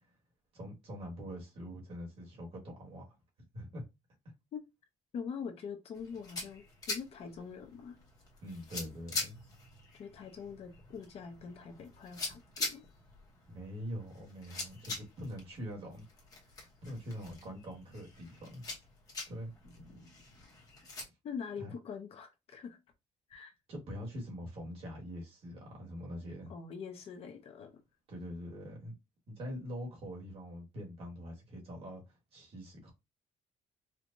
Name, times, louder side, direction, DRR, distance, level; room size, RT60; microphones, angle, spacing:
voice 1, 0.5-3.2 3.5-3.8 8.4-9.4 13.5-16.0 16.8-18.6 19.3-19.5 21.6-21.7 23.7-26.5 28.1-28.9 29.3-32.9, equal, 45° right, 1.6 m, -44 dB
voice 2, 5.1-8.0 10.0-12.8 21.2-22.8 23.3-23.5 26.5-27.7, left 6 dB, 45° left, 0.7 m, -44 dB
sound 1, 5.9-21.0, left 3 dB, 25° left, 1.0 m, -44 dB
4.4 x 2.3 x 2.6 m
cardioid pair, 175°, 14 cm